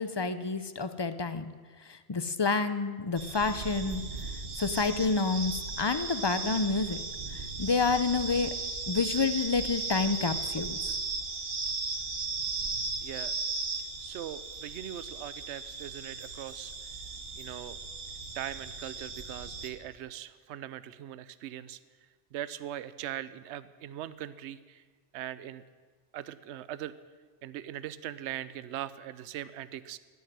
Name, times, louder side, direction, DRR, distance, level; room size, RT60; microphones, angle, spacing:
voice 1, 0.0-1.5 1.9-4.0 4.5-7.0 7.6-8.6 8.9-10.8, left 4 dB, 35° left, 12 dB, 0.4 m, -29 dB
sound 1, 3.2-19.7, right 4 dB, 50° right, 1.5 m, -36 dB
voice 2, 13.0-13.3 14.0-16.7 17.4-17.8 18.3-21.8 22.3-24.8 25.1-25.6 26.1-26.9 27.4-30.0, right 12 dB, 70° right, 16 dB, 0.9 m, -40 dB
16.0 x 7.3 x 9.9 m, 1.5 s
omnidirectional pair, 1.3 m